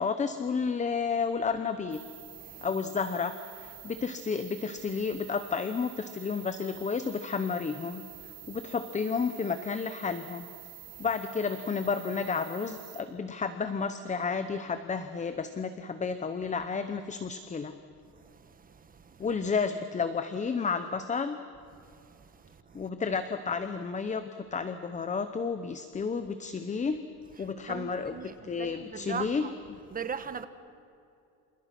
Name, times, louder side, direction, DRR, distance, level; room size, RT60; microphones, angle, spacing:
voice 1, 0.0-2.0 2.6-8.0 8.5-10.5 11.0-17.7 19.2-21.4 22.7-27.0 27.4-29.5, left 5 dB, 20° left, 0.9 m, -31 dB
sound 1, 1.9-13.0, right 14 dB, 60° right, 3.6 m, -48 dB
voice 2, 2.3-2.7 8.4-8.6 10.8-11.1 18.1-19.4 21.7-22.9 27.4-29.5 29.9-30.5, right 6 dB, 20° right, 1.3 m, -41 dB
29.5 x 28.0 x 6.1 m
cardioid pair, 165°, 39 cm